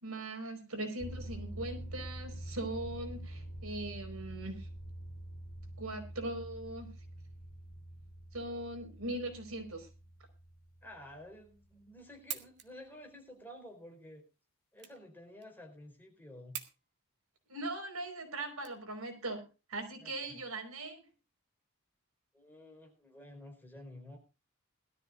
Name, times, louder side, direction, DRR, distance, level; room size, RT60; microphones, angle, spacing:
voice 1, 0.0-4.7 5.8-6.9 8.3-9.9 17.5-21.0, right 2 dB, 75° right, 5 dB, 4.8 m, -40 dB
sound 1, 1.0-11.8, right 1 dB, 65° left, 3.0 m, -46 dB
voice 2, 10.8-14.2 14.7-16.6 20.0-20.4 22.3-24.2, left 1 dB, 10° left, 1 dB, 4.4 m, -51 dB
sound 2, 12.3-19.3, right 9 dB, 50° right, 1.8 m, -48 dB
21.0 x 13.5 x 2.5 m, 0.30 s
head